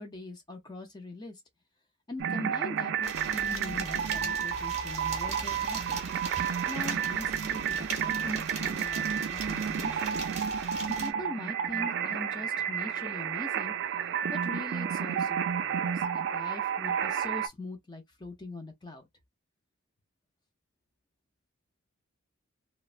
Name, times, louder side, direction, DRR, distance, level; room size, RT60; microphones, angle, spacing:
voice 1, 0.0-1.4 2.1-6.0 6.7-10.2 10.9-13.7 14.0-19.1, left 2 dB, 20° left, 0.4 m, -42 dB
sound 1, 2.2-17.5, right 8 dB, 50° right, 0.3 m, -31 dB
sound 2, 3.0-11.1, right 4 dB, 30° right, 0.8 m, -41 dB
3.1 x 2.0 x 2.4 m
head